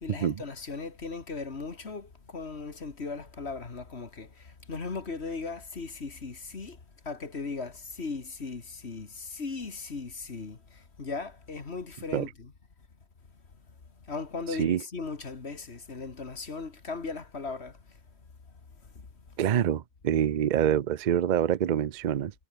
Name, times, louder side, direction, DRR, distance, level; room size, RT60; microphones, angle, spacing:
voice 1, 0.0-6.8 7.0-12.5 14.1-17.8, left 4 dB, 45° left, 2.2 m, -37 dB
voice 2, 14.5-14.8 19.4-22.3, right 10 dB, 70° right, 0.4 m, -26 dB
omnidirectional pair, 1.6 m